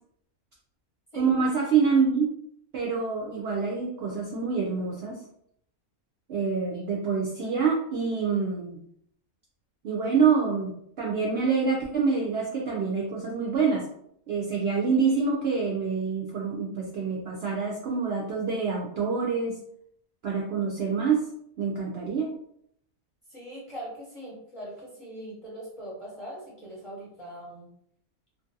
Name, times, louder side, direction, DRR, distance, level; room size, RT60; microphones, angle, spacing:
voice 1, 1.1-2.3 2.7-5.1 6.3-8.8 9.8-13.8 14.3-19.6 20.2-21.2 21.6-22.3, right 5 dB, 65° right, -2 dB, 0.6 m, -26 dB
voice 2, 23.3-27.7, right 1 dB, 30° left, -7 dB, 0.7 m, -41 dB
2.5 x 2.5 x 2.6 m, 0.70 s
omnidirectional pair, 1.5 m